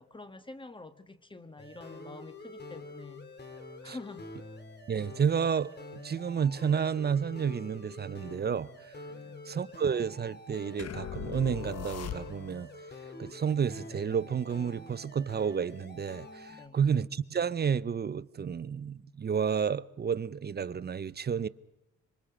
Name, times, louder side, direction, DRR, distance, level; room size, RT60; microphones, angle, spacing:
voice 1, 0.0-3.3 3.8-4.5 9.1-9.5 16.5-16.8, left 2 dB, 15° left, 1.5 m, -47 dB
sound 1, 1.6-16.7, left 2 dB, 35° left, 3.5 m, -47 dB
voice 2, 4.9-8.7 9.5-12.7 13.2-21.5, right 7 dB, 35° right, 0.7 m, -31 dB
sound 2, 10.8-12.7, left 10 dB, 55° left, 1.1 m, -39 dB
26.5 x 25.0 x 5.1 m
cardioid pair, 90°, 30 cm